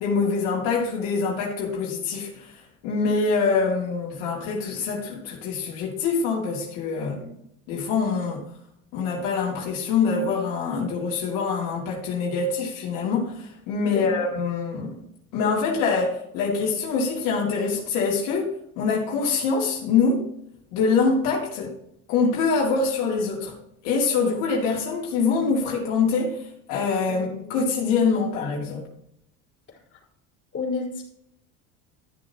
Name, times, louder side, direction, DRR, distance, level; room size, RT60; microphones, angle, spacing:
voice 1, 0.0-2.5 2.8-7.2 7.7-8.4 8.9-15.0 15.3-18.5 18.8-20.3 20.7-21.7 22.1-23.5 23.8-28.8, left 4 dB, 75° left, 2.6 m, -24 dB
voice 2, 27.1-27.7 29.7-30.0 30.5-31.0, left 4 dB, 35° left, 4.2 m, -33 dB
13.5 x 7.0 x 3.0 m
supercardioid pair, 110°, 32 cm